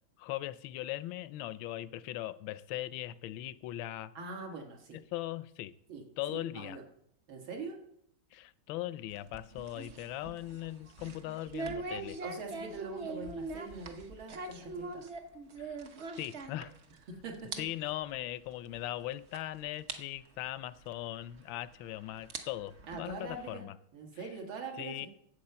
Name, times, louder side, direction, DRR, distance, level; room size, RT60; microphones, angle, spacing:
voice 1, 0.2-4.1 5.1-5.7 6.2-6.8 8.3-12.2 15.6-15.8 16.2-16.7 17.6-23.7 24.8-25.1, left 14 dB, 75° left, 15 dB, 1.3 m, -39 dB
voice 2, 4.1-5.0 5.9-6.0 6.3-6.8 7.3-7.8 12.2-15.1 17.1-17.5 22.9-25.1, right 4 dB, 75° right, 2 dB, 2.6 m, -43 dB
sound 1, 9.1-17.0 17.3-17.6 17.9-18.0 18.7-18.8 19.3-19.4 19.9-20.0 21.3-21.4 22.1-23.5, right 3 dB, 50° right, 0.9 m, -42 dB
8.6 x 8.0 x 6.8 m, 0.71 s
omnidirectional pair, 2.2 m